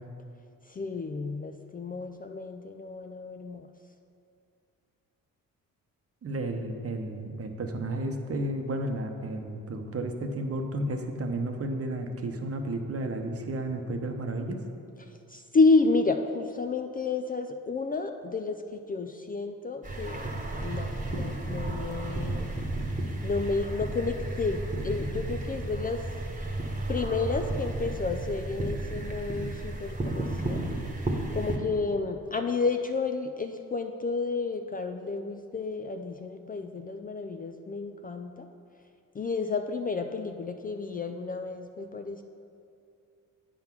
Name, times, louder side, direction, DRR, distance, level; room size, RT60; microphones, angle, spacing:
voice 1, 0.7-3.7 15.0-22.6 23.2-26.0 26.9-30.8 31.1-38.5 39.1-42.2, left 4 dB, 25° left, 6 dB, 0.4 m, -31 dB
voice 2, 6.2-14.6, right 1 dB, 40° right, 5 dB, 0.9 m, -32 dB
sound 1, 19.8-31.6, right 2 dB, 20° right, 1.2 m, -33 dB
8.6 x 3.8 x 6.0 m, 2.5 s
supercardioid pair, 70°, 34 cm